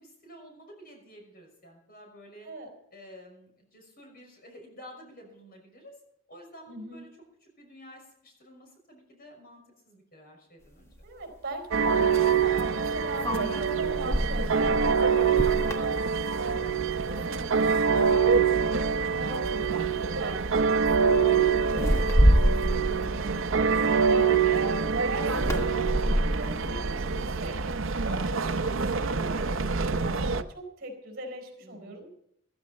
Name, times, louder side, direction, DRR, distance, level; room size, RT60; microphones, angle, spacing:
voice 1, 0.0-2.5 2.9-6.0 6.3-7.1 7.4-11.0 24.0-24.1 31.6-32.1, equal, 50° left, 2 dB, 5.8 m, -51 dB
voice 2, 6.7-7.1 11.0-16.0 16.4-16.7 17.0-18.7 19.2-27.6 28.0-32.1, right 2 dB, 55° right, 4 dB, 4.3 m, -40 dB
sound 1, 10.9-11.0 13.2-16.8 17.2-17.5 17.9-18.6 19.5-19.7 20.0-20.3 21.7-24.3 25.2-27.7, equal, 15° left, 1.6 m, -27 dB
sound 2, 11.7-30.4, right 6 dB, 75° right, 0.7 m, -25 dB
15.0 x 14.0 x 4.3 m, 0.75 s
head